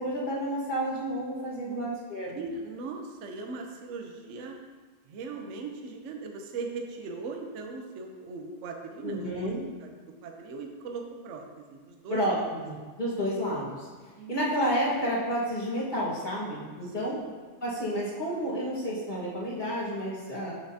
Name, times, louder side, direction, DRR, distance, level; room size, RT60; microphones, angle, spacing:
voice 1, 0.0-2.3 9.0-9.6 12.1-12.4 12.6-13.7 14.3-17.2 17.6-20.5, equal, 25° left, -7 dB, 1.4 m, -30 dB
voice 2, 2.3-4.6 5.1-9.5 9.8-12.2 13.2-13.3 14.2-14.6 16.8-17.3, right 3 dB, 60° right, 3 dB, 0.8 m, -39 dB
7.1 x 6.8 x 2.8 m, 1.4 s
omnidirectional pair, 2.1 m